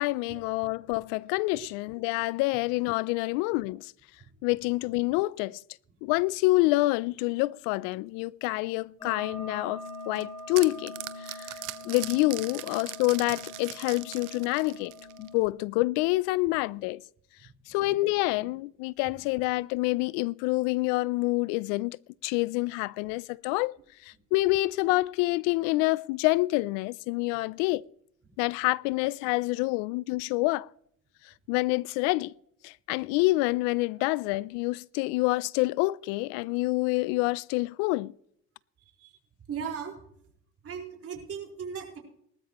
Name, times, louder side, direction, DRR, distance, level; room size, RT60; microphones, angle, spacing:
voice 1, 0.0-3.9 4.4-5.6 6.0-10.9 11.2-11.6 11.8-14.9 15.2-17.0 17.7-22.0 22.2-23.7 24.0-27.8 28.4-30.7 31.5-32.3 32.6-38.1, left 21 dB, 90° left, 0.5 m, -27 dB
sound 1, 9.0-15.4, left 2 dB, 15° left, 6.2 m, -43 dB
sound 2, 9.9-15.4, right 16 dB, 75° right, 1.1 m, -40 dB
voice 2, 39.5-40.0 40.6-42.0, right 7 dB, 45° right, 4.5 m, -37 dB
19.0 x 13.0 x 3.0 m
supercardioid pair, 85°, 32 cm